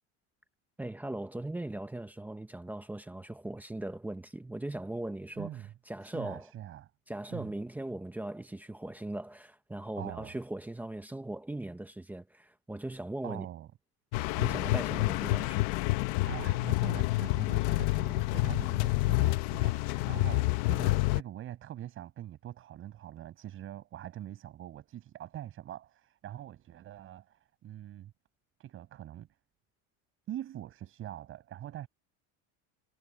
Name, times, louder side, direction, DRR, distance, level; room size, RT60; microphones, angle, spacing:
voice 1, 0.8-5.5 5.9-6.5 7.1-13.5 14.4-15.7, right 1 dB, 5° right, 1.0 m, -39 dB
voice 2, 5.4-5.7 6.0-6.9 7.3-7.5 10.0-10.4 13.2-13.7 16.2-28.1 28.6-29.3 30.3-31.9, right 12 dB, 40° right, 7.4 m, -43 dB
sound 1, 14.1-21.2, left 20 dB, 85° left, 1.1 m, -28 dB
cardioid pair, 170°, 32 cm